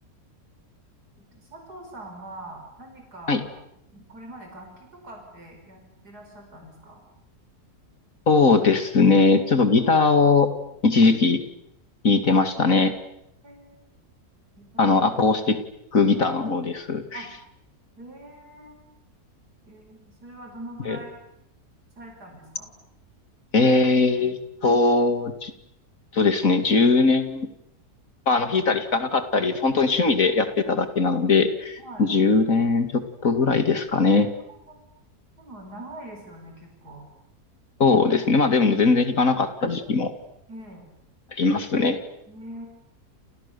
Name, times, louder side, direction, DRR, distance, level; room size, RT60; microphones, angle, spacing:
voice 1, 1.2-3.4 3.9-7.0 13.4-13.8 14.7-15.0 17.1-17.3 18.0-18.8 19.7-21.1 22.0-22.7 28.3-28.5 31.8-32.1 34.7-34.8 35.4-37.1 40.5-40.9 42.3-42.7, right 1 dB, 75° right, 2 dB, 5.9 m, -43 dB
voice 2, 8.3-10.5 10.8-11.4 12.0-12.9 14.8-15.6 15.9-17.2 20.9-21.0 23.5-25.5 26.1-27.5 28.3-34.3 37.8-40.1 41.3-42.0, left 4 dB, 55° left, 9 dB, 2.7 m, -20 dB
30.0 x 29.0 x 6.9 m, 0.77 s
omnidirectional pair, 1.7 m